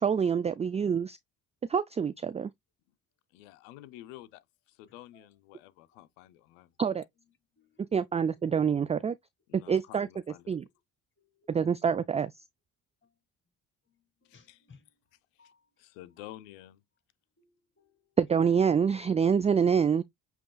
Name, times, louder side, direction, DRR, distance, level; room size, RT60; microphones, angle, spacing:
voice 1, 0.0-1.2 1.7-2.5 6.8-7.0 7.9-9.1 9.5-10.1 10.5-10.6 11.5-12.3 18.2-20.0, right 7 dB, 20° right, 0.3 m, -26 dB
voice 2, 3.3-4.4 4.7-6.7 9.5-10.5 14.3-14.6 15.8-16.8, left 14 dB, 90° left, 0.6 m, -50 dB
voice 3, 7.6-8.1 11.2-11.5 13.0-13.1 14.2-14.9 15.4-15.7 16.2-16.3 17.4-18.2, left 4 dB, 30° left, 1.9 m, -62 dB
7.5 x 2.9 x 2.3 m
hypercardioid pair, 55°, 37 cm